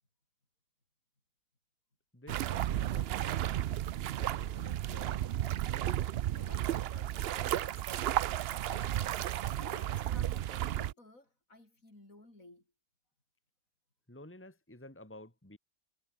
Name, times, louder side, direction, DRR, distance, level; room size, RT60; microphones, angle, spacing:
voice 1, 2.1-3.6 4.2-5.3 14.1-15.6, left 1 dB, 10° left, 2.3 m, -52 dB
sound 1, 2.3-10.9, right 12 dB, 70° right, 0.5 m, -33 dB
voice 2, 6.1-8.0 8.5-12.7, left 2 dB, 60° left, 7.0 m, -56 dB
omnidirectional pair, 1.6 m